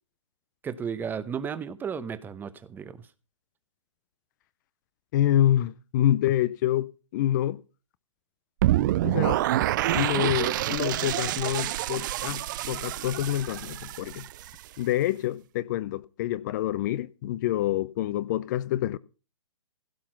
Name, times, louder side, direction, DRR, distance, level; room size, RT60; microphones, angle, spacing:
voice 1, 0.6-3.0, right 7 dB, 10° right, 0.8 m, -34 dB
voice 2, 5.1-7.6 9.0-9.4 9.9-14.3 14.8-19.0, left 12 dB, 35° left, 0.6 m, -27 dB
sound 1, 8.6-14.6, right 14 dB, 40° right, 0.5 m, -27 dB
16.0 x 5.9 x 5.8 m
figure-of-eight pair, 130°, 16 cm